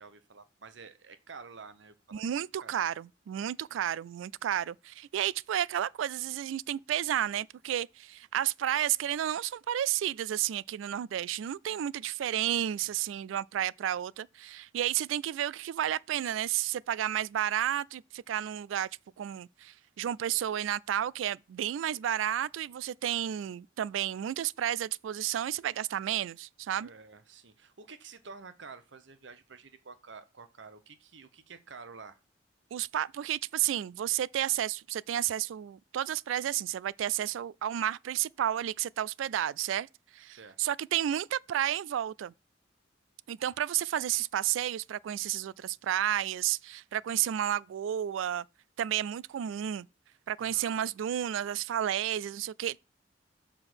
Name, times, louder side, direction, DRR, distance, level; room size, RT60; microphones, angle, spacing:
voice 1, 0.0-2.2 2.6-2.7 26.8-32.2 40.3-40.6 50.4-50.8, right 4 dB, 75° right, 0.9 m, -50 dB
voice 2, 2.1-18.9 19.2-26.9 32.7-39.9 40.1-42.3 43.3-48.4 48.8-49.9 50.3-52.8, right 11 dB, 90° right, 0.3 m, -31 dB
6.8 x 3.8 x 6.2 m
head